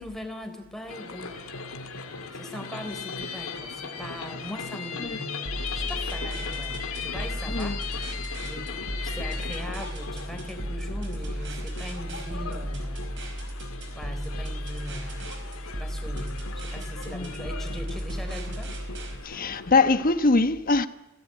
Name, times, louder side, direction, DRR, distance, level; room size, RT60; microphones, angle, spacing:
voice 1, 0.0-1.4 2.3-5.4 5.7-7.8 8.4-8.7 9.0-13.1 13.9-15.3 15.6-18.7, equal, ahead, 4.0 m, -40 dB
sound 1, 0.9-20.1, left 5 dB, 80° left, 2.3 m, -38 dB
sound 2, 5.5-19.2, equal, 60° right, 5.2 m, -34 dB
voice 2, 7.5-7.8 17.1-17.3 19.2-20.9, left 3 dB, 45° left, 1.2 m, -23 dB
27.0 x 17.5 x 9.3 m
head